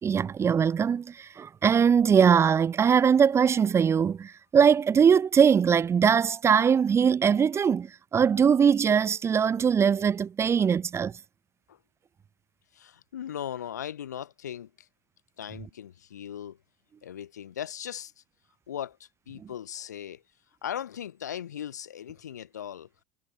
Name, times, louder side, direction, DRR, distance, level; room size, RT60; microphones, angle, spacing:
voice 1, 0.0-11.1 19.4-19.5, right 7 dB, 30° right, 1.0 m, -21 dB
voice 2, 12.7-14.9 15.4-16.6 17.0-18.2 18.7-20.2 20.6-22.9, left 10 dB, 85° left, 0.7 m, -38 dB
hypercardioid pair, 75°, 9 cm